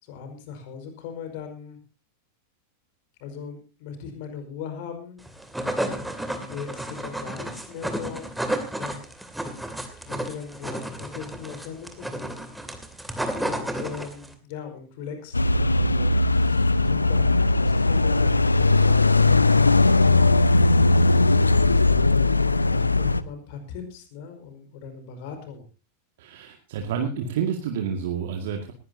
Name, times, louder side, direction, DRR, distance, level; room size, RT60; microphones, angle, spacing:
voice 1, 0.0-1.8 3.2-5.2 6.5-8.3 8.8-9.1 10.0-12.3 13.4-25.6, left 6 dB, 50° left, 6 dB, 5.0 m, -39 dB
sound 1, 5.3-14.3, right 1 dB, 5° right, 2.6 m, -32 dB
sound 2, 15.3-23.2, left 2 dB, 80° left, 0.7 m, -19 dB
voice 2, 26.2-28.7, right 7 dB, 55° right, 3 dB, 2.1 m, -29 dB
20.0 x 17.0 x 2.8 m, 0.33 s
figure-of-eight pair, 90°, 0 cm